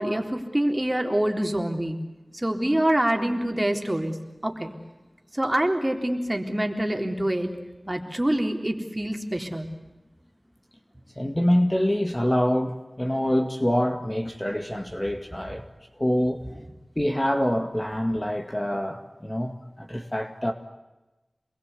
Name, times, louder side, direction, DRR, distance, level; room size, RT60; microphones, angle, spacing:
voice 1, 0.0-2.0 2.3-4.1 4.4-4.7 5.3-7.5 7.9-9.7, right 1 dB, 20° right, 3 dB, 3.8 m, -25 dB
voice 2, 11.2-15.6 16.0-16.5 17.0-20.5, equal, 20° left, 5 dB, 2.0 m, -25 dB
27.5 x 21.5 x 8.3 m, 1.1 s
wide cardioid pair, 55°, 0 cm